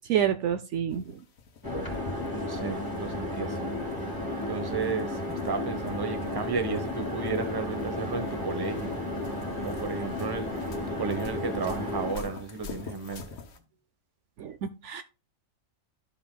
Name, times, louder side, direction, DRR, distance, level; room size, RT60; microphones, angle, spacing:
voice 1, 0.1-1.2 14.4-15.0, right 9 dB, 70° right, 0.9 m, -28 dB
sound 1, 0.9-13.6, left 5 dB, 85° left, 1.4 m, -46 dB
sound 2, 1.6-12.1, left 1 dB, 15° left, 2.2 m, -33 dB
voice 2, 2.3-3.8 4.5-9.0 9.3-10.6 11.0-13.4, right 4 dB, 20° right, 0.8 m, -33 dB
12.5 x 5.6 x 2.2 m
omnidirectional pair, 1.4 m